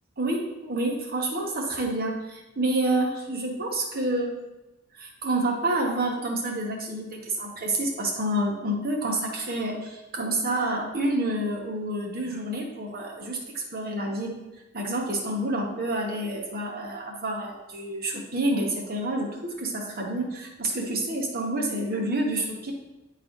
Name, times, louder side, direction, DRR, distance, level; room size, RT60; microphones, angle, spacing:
voice 1, 0.2-4.4 4.9-14.4 14.7-22.7, right 1 dB, 45° right, 0 dB, 1.2 m, -28 dB
10.0 x 4.1 x 3.1 m, 1.0 s
head